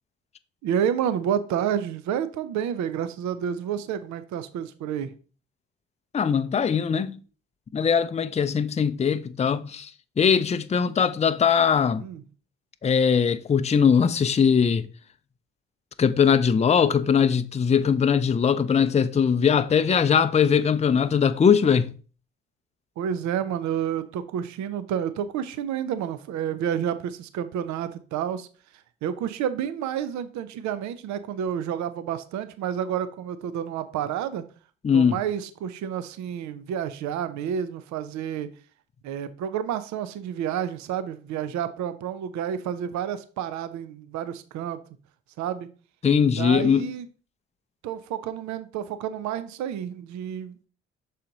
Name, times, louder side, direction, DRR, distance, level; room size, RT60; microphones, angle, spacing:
voice 1, 0.6-5.1 12.0-12.2 23.0-28.5 29.0-34.4 34.9-38.5 39.0-44.8 45.4-45.7 46.4-47.1 47.8-50.6, right 9 dB, 60° right, 0.7 m, -29 dB
voice 2, 6.1-7.2 7.7-9.9 10.2-12.0 12.8-14.9 16.0-21.9 34.8-35.2 46.0-46.9, left 7 dB, 20° left, 0.5 m, -21 dB
6.3 x 4.2 x 3.9 m
hypercardioid pair, 50°, 32 cm